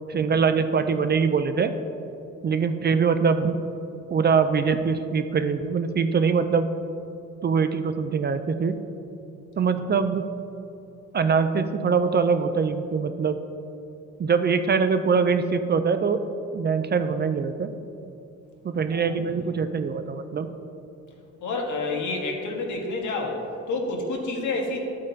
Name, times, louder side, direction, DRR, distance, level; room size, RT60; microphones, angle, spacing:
voice 1, 0.1-1.7 2.4-3.6 4.1-6.7 7.4-8.8 9.6-10.3 11.1-13.4 14.2-16.2 16.5-17.7 18.6-20.5, right 5 dB, 35° right, 9 dB, 0.4 m, -23 dB
voice 2, 21.4-24.8, left 3 dB, 75° left, 0 dB, 1.6 m, -29 dB
11.5 x 8.4 x 2.8 m, 2.8 s
cardioid pair, 90°, 30 cm